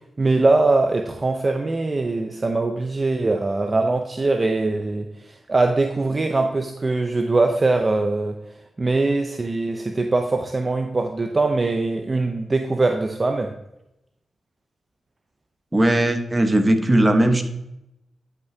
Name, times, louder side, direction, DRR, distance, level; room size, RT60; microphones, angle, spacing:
voice 1, 0.2-8.4 8.8-13.5, right 3 dB, 40° right, 4 dB, 0.7 m, -22 dB
voice 2, 15.7-17.4, right 1 dB, 20° right, 6 dB, 1.2 m, -18 dB
11.5 x 5.9 x 2.8 m, 0.85 s
supercardioid pair, 50°, 0 cm